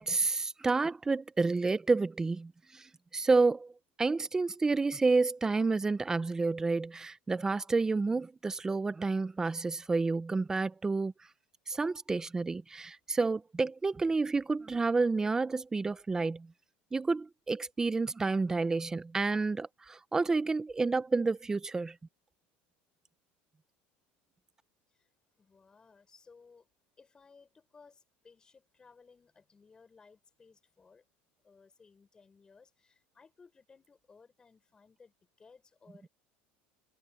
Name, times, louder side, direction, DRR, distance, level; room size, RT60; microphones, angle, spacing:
voice 1, 0.0-3.7 4.0-11.1 11.7-16.5 16.9-21.9, right 3 dB, 10° right, 0.6 m, -30 dB
voice 2, 25.4-26.7 27.0-31.1 31.4-36.1, left 5 dB, 15° left, 6.0 m, -60 dB
cardioid pair, 145°, 5 cm